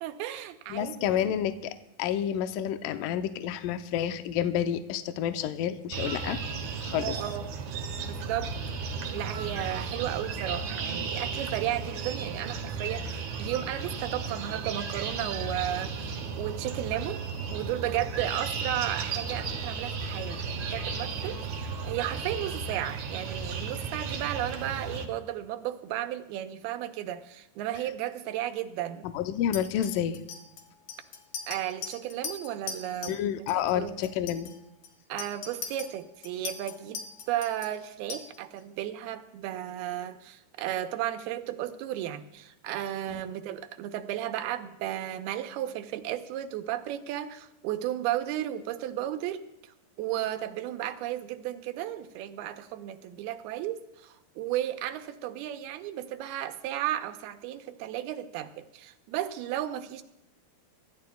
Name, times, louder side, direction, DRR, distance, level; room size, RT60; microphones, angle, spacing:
voice 1, 0.0-1.3 6.9-7.5 8.0-8.5 8.8-17.2 17.5-29.1 31.5-33.2 33.5-34.0 35.1-37.0 37.3-60.0, right 12 dB, 80° right, 9 dB, 2.7 m, -34 dB
voice 2, 0.7-6.4 6.8-7.2 29.0-30.2 33.1-34.5 43.1-43.2, left 10 dB, 85° left, 8 dB, 1.9 m, -29 dB
sound 1, 5.9-25.1, right 5 dB, 60° right, 2.3 m, -34 dB
Chink clink, 29.5-33.2 33.5-33.8 34.0-38.6, left 6 dB, 65° left, 3.4 m, -40 dB
25.0 x 14.0 x 2.3 m, 0.89 s
omnidirectional pair, 4.6 m